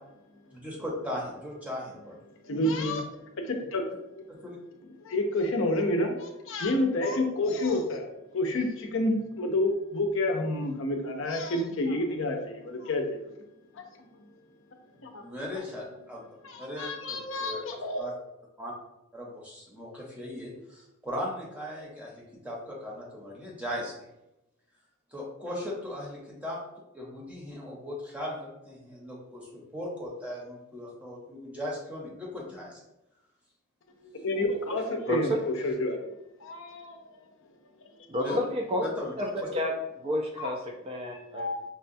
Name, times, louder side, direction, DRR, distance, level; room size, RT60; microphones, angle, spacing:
voice 1, 0.5-2.2 4.3-4.6 7.6-7.8 15.2-18.1 18.6-18.7 19.1-23.9 25.1-26.6 26.9-32.8 38.2-38.4 38.8-39.1 39.4-39.5, left 1 dB, 5° right, -3 dB, 0.7 m, -38 dB
voice 2, 2.4-3.0 3.4-3.8 4.1-4.2 5.0-8.1 8.3-13.3 13.7-14.1 15.0-15.2 16.4-18.1 34.0-36.0 36.4-37.3 38.1-38.4 40.4-40.5 41.1-41.6, left 1 dB, 60° left, 4 dB, 0.5 m, -29 dB
voice 3, 35.1-35.4 38.1-38.9 39.2-39.7 40.0-41.5, left 1 dB, 25° right, 1 dB, 0.3 m, -30 dB
5.4 x 2.2 x 2.6 m, 0.91 s
head